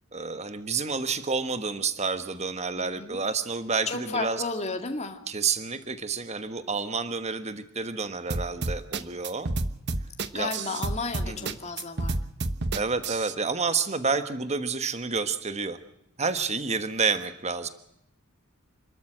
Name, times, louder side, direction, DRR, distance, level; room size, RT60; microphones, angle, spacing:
voice 1, 0.1-4.4 5.3-9.5 10.3-10.5 11.2-11.5 12.7-15.8 16.2-17.7, right 4 dB, 30° right, 10 dB, 1.3 m, -29 dB
voice 2, 2.7-3.2 3.9-5.2 10.3-12.2, left 3 dB, 30° left, 5 dB, 2.2 m, -33 dB
sound 1, 8.3-13.3, right 2 dB, 50° right, 1.1 m, -30 dB
28.0 x 13.0 x 7.4 m, 0.79 s
head